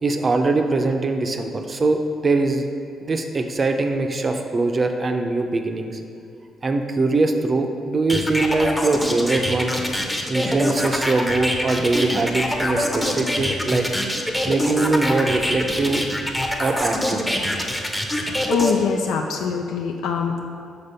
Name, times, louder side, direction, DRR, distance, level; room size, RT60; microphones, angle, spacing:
voice 1, 0.0-2.6 3.0-6.0 6.6-9.7 10.3-13.9 14.4-16.0 16.6-17.2, right 3 dB, 35° right, 5 dB, 0.5 m, -22 dB
sound 1, 8.1-18.7, equal, 5° left, 0.7 m, -24 dB
voice 2, 18.1-20.4, left 6 dB, 90° left, 2 dB, 0.3 m, -24 dB
5.1 x 4.0 x 5.5 m, 2.4 s
cardioid pair, 90°, 0 cm